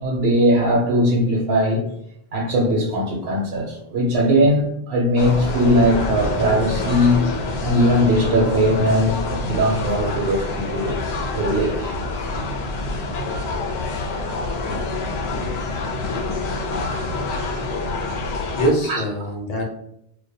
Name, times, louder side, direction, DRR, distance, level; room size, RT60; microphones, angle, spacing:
voice 1, 0.0-1.8 2.3-7.2 7.6-12.2 18.9-19.0, equal, 75° right, -2 dB, 0.8 m, -20 dB
sound 1, 5.2-18.7, left 2 dB, 85° left, 0.8 m, -27 dB
voice 2, 18.2-19.6, right 1 dB, 45° left, 0 dB, 0.7 m, -24 dB
2.2 x 2.1 x 2.6 m, 0.76 s
omnidirectional pair, 1.0 m